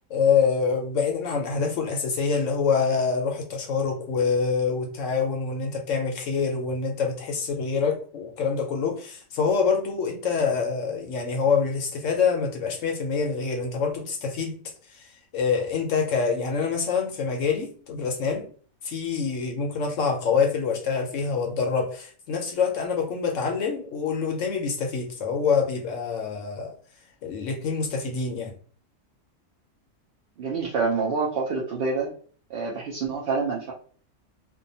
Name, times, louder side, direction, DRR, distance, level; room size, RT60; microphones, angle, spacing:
voice 1, 0.1-14.6 14.9-15.0 15.3-18.5 18.8-26.7 27.2-28.5, left 5 dB, 70° left, 0.9 m, -26 dB
voice 2, 30.4-32.1 32.5-33.7, right 4 dB, 60° right, 0.6 m, -27 dB
2.6 x 2.2 x 2.7 m
omnidirectional pair, 1.5 m